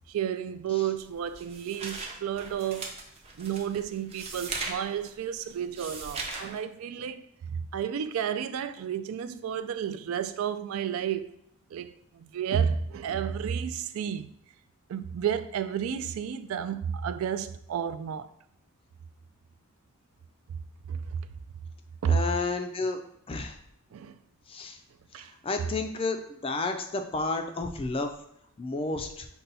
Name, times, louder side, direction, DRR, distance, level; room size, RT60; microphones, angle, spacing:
voice 1, 0.1-2.9 3.4-11.4 11.7-14.3 14.9-18.3 20.9-21.2 22.0-22.2 23.9-24.2 25.1-25.3, right 8 dB, 75° right, 0.3 m, -31 dB
sound 1, 1.0-6.6, right 3 dB, 30° right, 0.6 m, -39 dB
voice 2, 22.1-23.0 23.3-23.6 24.5-24.8 25.2-28.1 28.6-29.3, left 3 dB, 25° left, 0.4 m, -31 dB
5.4 x 2.3 x 4.0 m
head